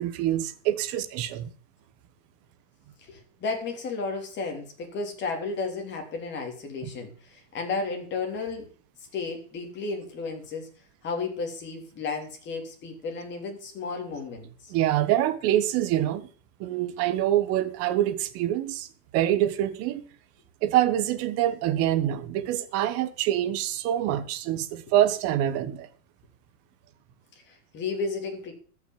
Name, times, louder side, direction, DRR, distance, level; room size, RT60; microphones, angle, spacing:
voice 1, 0.0-1.5 14.7-16.3 16.6-18.9 19.1-20.1 20.6-25.9, right 12 dB, 30° right, 1.2 m, -25 dB
voice 2, 3.0-8.7 9.1-10.7 11.0-14.7 27.5-28.5, left 4 dB, 20° left, 3.3 m, -33 dB
14.0 x 6.1 x 7.5 m
supercardioid pair, 150°, 47 cm